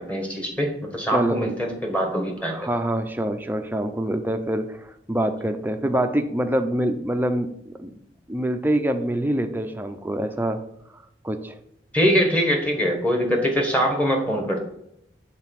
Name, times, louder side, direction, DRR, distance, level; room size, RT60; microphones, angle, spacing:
voice 1, 0.0-2.5 11.9-14.6, equal, 10° left, 1 dB, 1.4 m, -23 dB
voice 2, 1.1-1.5 2.5-7.9 8.3-10.6 11.2-11.6, right 1 dB, 10° right, 7 dB, 0.6 m, -25 dB
7.8 x 4.0 x 6.0 m, 0.74 s
head